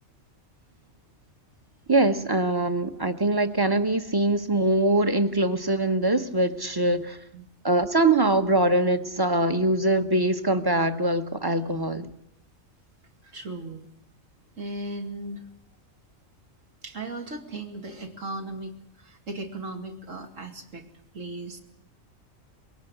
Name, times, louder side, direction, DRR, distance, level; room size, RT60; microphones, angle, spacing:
voice 1, 1.9-7.2 7.6-12.1, right 2 dB, 20° right, 9 dB, 1.0 m, -23 dB
voice 2, 13.2-13.9 14.6-15.4 16.8-20.8 21.1-21.6, right 2 dB, 70° right, 4 dB, 2.8 m, -37 dB
22.5 x 17.5 x 8.0 m, 0.75 s
omnidirectional pair, 1.4 m